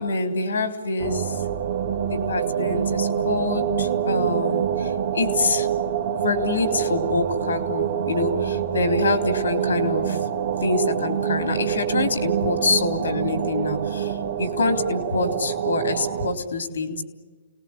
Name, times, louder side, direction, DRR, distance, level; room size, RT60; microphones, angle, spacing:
voice 1, 0.0-1.5 2.0-5.7 6.1-10.3 10.6-17.0, left 3 dB, 85° left, 8 dB, 3.6 m, -26 dB
sound 1, 1.0-16.3, right 9 dB, 65° right, 2.3 m, -26 dB
29.0 x 19.0 x 9.7 m, 1.4 s
hypercardioid pair, 130°, 0 cm